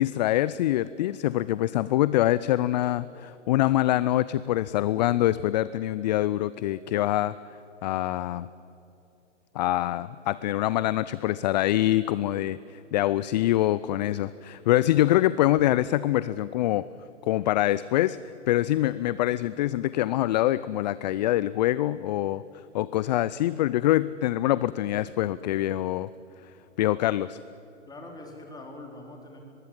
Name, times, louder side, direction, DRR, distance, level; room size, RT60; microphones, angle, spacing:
voice 1, 0.0-7.3 7.8-8.5 9.5-16.9 17.2-22.4 22.7-26.1 26.8-27.4, left 14 dB, 35° left, 17 dB, 0.5 m, -25 dB
voice 2, 27.9-29.4, left 2 dB, 10° left, 1 dB, 4.2 m, -44 dB
23.0 x 21.5 x 7.5 m, 2.9 s
hypercardioid pair, 125°, 37 cm